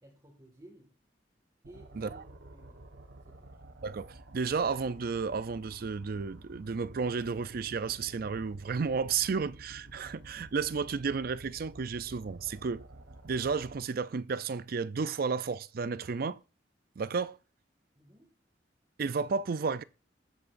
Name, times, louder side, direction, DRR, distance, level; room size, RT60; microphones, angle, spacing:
voice 1, 0.0-0.9 1.7-2.2 2.5-2.8 3.2-3.5 17.9-18.4, right 1 dB, 25° right, 2.0 m, -55 dB
sound 1, 1.6-13.8, right 1 dB, 90° right, 1.3 m, -51 dB
voice 2, 3.8-12.9 13.2-16.4 17.0-17.4 19.0-19.8, right 5 dB, 55° right, 0.5 m, -32 dB
20.0 x 7.0 x 2.6 m
head